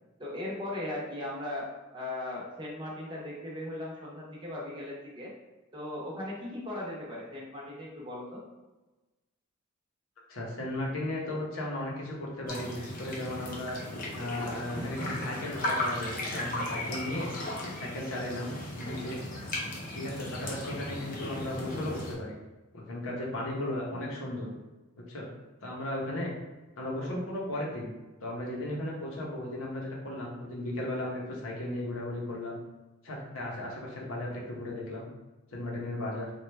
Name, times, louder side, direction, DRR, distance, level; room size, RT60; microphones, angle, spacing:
voice 1, 0.2-1.7 1.9-5.3 5.7-8.4, left 1 dB, 25° right, -5 dB, 0.8 m, -38 dB
voice 2, 10.3-13.8 14.1-17.3 17.8-19.2 19.9-22.3 22.7-24.5 25.1-25.3 25.6-26.3 26.8-27.9 28.2-32.6 33.0-35.1 35.5-36.3, left 1 dB, 85° left, -3 dB, 0.9 m, -35 dB
sound 1, 12.5-22.1, left 1 dB, 45° left, 0.7 m, -36 dB
3.1 x 2.3 x 3.3 m, 1.1 s
head